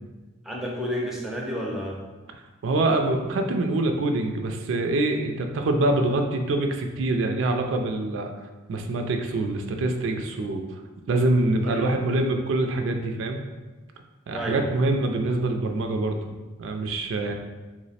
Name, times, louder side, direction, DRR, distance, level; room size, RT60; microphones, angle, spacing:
voice 1, 0.4-2.0 11.6-11.9 14.3-14.7 17.2-17.3, equal, ahead, -2 dB, 0.4 m, -31 dB
voice 2, 2.6-8.3 8.7-10.6 11.1-13.4 14.3-16.3 16.6-17.3, right 2 dB, 70° right, 4 dB, 0.3 m, -25 dB
3.1 x 2.0 x 4.0 m, 1.2 s
head